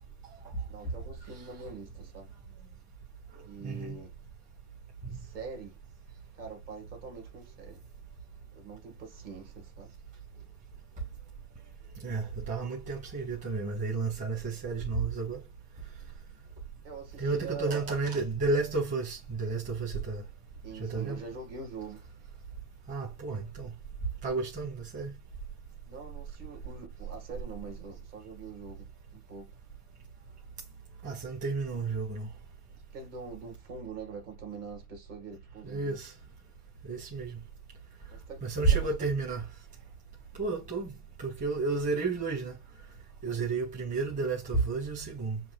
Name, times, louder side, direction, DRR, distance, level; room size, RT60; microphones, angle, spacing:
voice 1, 0.7-2.3 3.4-4.1 5.1-5.8 6.3-7.8 8.6-9.9 16.8-18.0 20.6-22.1 25.9-29.6 32.9-36.0 38.1-39.1 43.2-43.5, right 5 dB, 35° right, 1.9 m, -44 dB
voice 2, 3.6-4.0 5.1-5.2 12.0-15.4 17.2-20.2 20.8-21.2 22.9-23.7 24.2-25.1 31.0-32.3 35.6-36.1 36.9-37.4 38.4-39.4 40.4-40.9 41.2-42.5 43.2-45.4, right 4 dB, 15° right, 1.7 m, -31 dB
7.1 x 2.6 x 2.4 m
hypercardioid pair, 135°, 45 cm